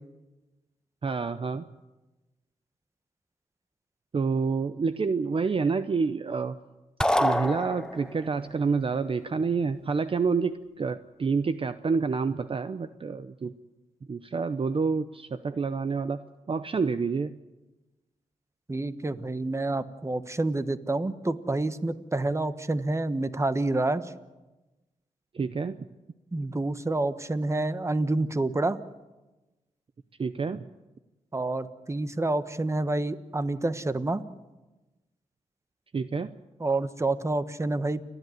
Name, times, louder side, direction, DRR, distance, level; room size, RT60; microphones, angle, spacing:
voice 1, 1.0-1.6 4.1-6.6 7.2-13.5 14.1-17.4 25.3-25.9 30.2-30.6 35.9-36.3, right 5 dB, 45° right, 12 dB, 0.7 m, -28 dB
sound 1, 7.0-8.3, left 1 dB, 5° left, 0.6 m, -26 dB
voice 2, 18.7-24.1 26.3-28.8 31.3-34.2 36.6-38.0, right 2 dB, 20° right, 12 dB, 1.2 m, -28 dB
29.0 x 11.0 x 9.3 m, 1.1 s
cardioid pair, 75°, 13 cm